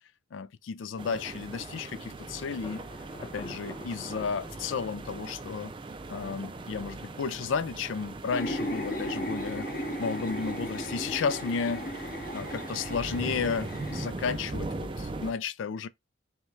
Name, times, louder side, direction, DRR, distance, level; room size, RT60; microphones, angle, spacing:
voice 1, 0.3-2.8 3.2-5.7 6.1-9.7 10.0-11.8 12.3-15.9, left 5 dB, 80° left, 0.4 m, -33 dB
sound 1, 1.0-15.3, right 3 dB, 25° right, 0.3 m, -40 dB
Thunder, 2.6-8.3, left 2 dB, 25° left, 0.8 m, -49 dB
sound 2, 8.3-14.1, equal, 50° left, 1.6 m, -36 dB
5.7 x 2.2 x 3.1 m
head